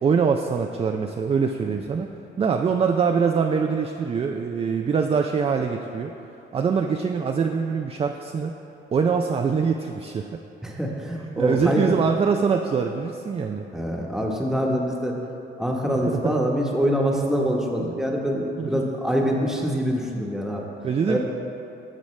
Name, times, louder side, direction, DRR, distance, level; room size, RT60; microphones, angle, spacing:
voice 1, 0.0-2.1 2.4-6.1 6.5-8.6 8.9-10.4 10.7-10.8 11.4-13.6 15.9-16.4 17.8-18.0 18.6-18.8 20.8-21.2, right 6 dB, 30° right, 4 dB, 0.4 m, -24 dB
voice 2, 10.6-11.9 13.7-15.1 15.6-20.7 21.1-21.2, equal, ahead, -1 dB, 1.2 m, -25 dB
15.0 x 5.0 x 3.2 m, 3.0 s
cardioid pair, 90°, 20 cm